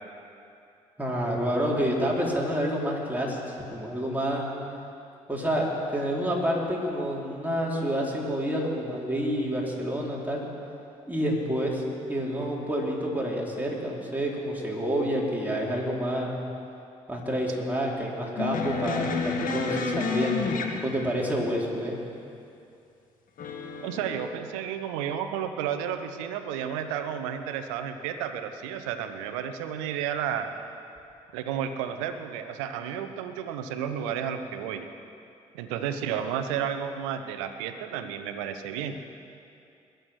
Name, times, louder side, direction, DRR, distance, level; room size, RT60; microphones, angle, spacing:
voice 1, 1.0-3.4 3.7-4.4 5.3-10.4 11.1-11.8 12.1-16.3 17.1-20.4 20.8-22.0, equal, 10° right, -4 dB, 4.6 m, -28 dB
sound 1, 18.4-21.3 23.4-24.1, left 4 dB, 60° left, 1.5 m, -30 dB
voice 2, 23.8-30.5 31.3-34.9 35.5-39.0, right 8 dB, 80° right, 9 dB, 0.8 m, -32 dB
21.5 x 8.0 x 6.3 m, 2.6 s
hypercardioid pair, 45°, 16 cm